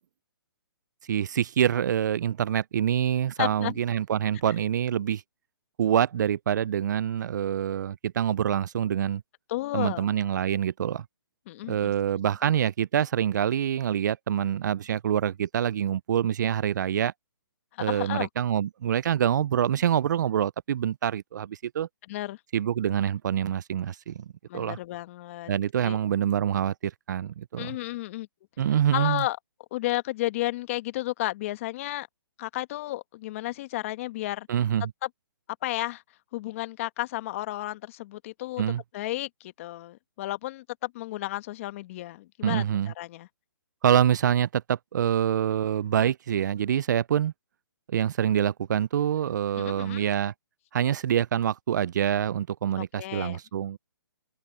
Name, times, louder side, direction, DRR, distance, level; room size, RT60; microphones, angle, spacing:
voice 1, 1.1-5.2 5.8-9.2 9.7-11.0 11.7-17.1 17.8-21.9 22.5-24.3 24.5-24.8 25.5-27.8 28.6-29.2 34.5-34.9 38.6-38.8 42.4-42.9 43.8-47.3 47.9-50.3 50.7-53.8, right 9 dB, 55° right, 0.4 m, -26 dB
voice 2, 3.4-3.8 9.5-10.1 11.5-11.9 17.8-18.3 22.1-22.4 24.5-25.5 25.8-26.0 27.6-28.3 28.9-29.4 29.7-32.1 32.4-34.5 35.0-35.1 35.6-36.0 36.3-38.6 38.9-43.3 49.6-50.1 52.8-53.4, left 16 dB, 35° left, 1.5 m, -32 dB
hypercardioid pair, 150°, 12 cm